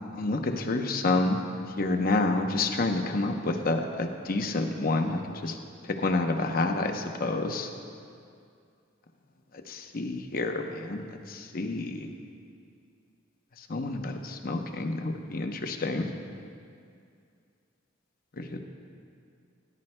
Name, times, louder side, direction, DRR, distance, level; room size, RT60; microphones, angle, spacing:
voice 1, 0.2-1.4 1.8-5.5 6.0-7.7 9.9-11.0 11.5-11.9 13.7-16.1 18.4-18.5, left 2 dB, 50° left, 4 dB, 0.8 m, -28 dB
17.5 x 11.0 x 2.2 m, 2.3 s
head